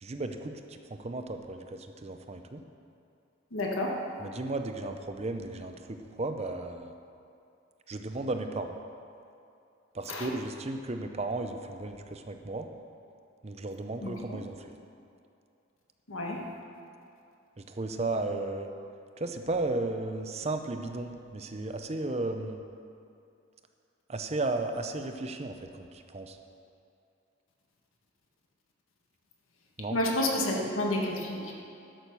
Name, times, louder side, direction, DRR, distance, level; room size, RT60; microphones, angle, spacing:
voice 1, 0.0-2.6 4.2-6.9 7.9-8.8 9.9-12.7 13.4-14.7 17.6-18.7 19.2-22.6 24.1-26.4 29.8-30.0, right 2 dB, 30° right, 6 dB, 0.6 m, -34 dB
voice 2, 3.5-3.9 10.1-10.3 14.0-14.4 16.1-16.4 29.9-31.5, left 1 dB, 85° left, -1 dB, 1.6 m, -30 dB
11.5 x 6.4 x 6.8 m, 2.6 s
head